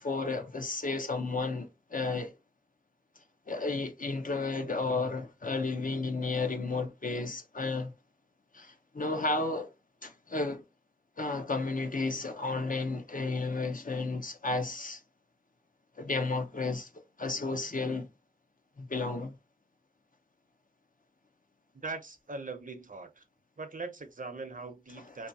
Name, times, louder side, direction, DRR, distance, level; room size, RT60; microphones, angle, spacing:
voice 1, 0.0-2.3 3.5-7.9 8.5-9.7 10.0-10.6 11.2-15.0 16.0-16.9 17.2-18.1 18.8-19.3, left 3 dB, 60° left, 0.6 m, -32 dB
voice 2, 21.7-23.2 23.6-25.3, right 3 dB, 60° right, 0.6 m, -41 dB
2.7 x 2.2 x 2.6 m
wide cardioid pair, 45°, 16 cm